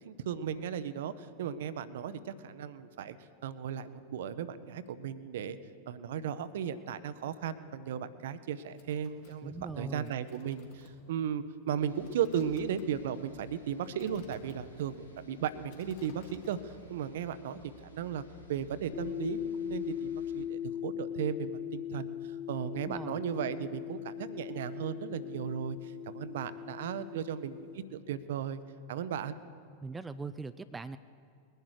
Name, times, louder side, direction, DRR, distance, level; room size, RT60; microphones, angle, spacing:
voice 1, 0.0-3.2 3.4-5.6 5.9-17.6 17.9-18.2 18.5-28.6 28.9-29.4, right 8 dB, 55° right, 14 dB, 0.7 m, -36 dB
sound 1, 8.5-16.9, left 6 dB, 50° left, 1.9 m, -58 dB
voice 2, 9.4-10.1 22.8-23.2 29.8-31.0, right 3 dB, 15° right, 12 dB, 0.4 m, -41 dB
sound 2, 11.8-20.4, left 3 dB, 90° left, 1.8 m, -57 dB
sound 3, 18.9-27.8, left 9 dB, 30° left, 0.9 m, -39 dB
21.0 x 11.0 x 4.8 m, 2.3 s
figure-of-eight pair, 90°, 0 cm